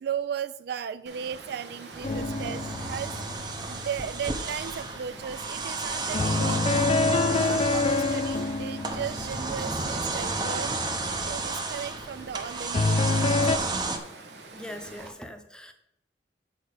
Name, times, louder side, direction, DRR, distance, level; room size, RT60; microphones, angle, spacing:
voice 1, 0.0-3.1 3.7-6.9 7.3-10.8 11.3-13.7, right 8 dB, 65° right, 14 dB, 0.3 m, -36 dB
Water, 1.1-15.1, right 3 dB, 80° right, 1.2 m, -45 dB
sound 1, 1.9-14.0, right 3 dB, 25° right, 0.8 m, -32 dB
sound 2, 2.0-4.3 6.1-10.0 12.7-13.6, left 3 dB, 35° left, 0.3 m, -27 dB
voice 2, 14.5-15.7, equal, 5° left, 6 dB, 0.8 m, -41 dB
7.3 x 4.7 x 6.6 m, 0.77 s
head